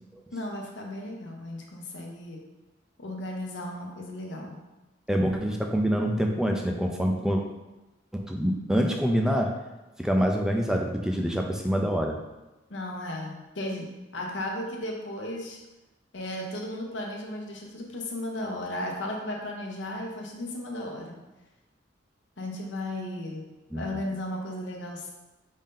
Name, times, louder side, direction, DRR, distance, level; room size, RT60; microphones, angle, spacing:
voice 1, 0.3-2.4 3.0-4.6 12.7-15.6 16.1-21.2 22.4-23.4 23.8-25.1, left 1 dB, 70° left, 0 dB, 0.8 m, -35 dB
voice 2, 5.1-7.4 8.1-9.5 10.0-12.2 23.7-23.8, equal, 5° right, 2 dB, 0.4 m, -26 dB
5.2 x 2.7 x 3.7 m, 1.1 s
head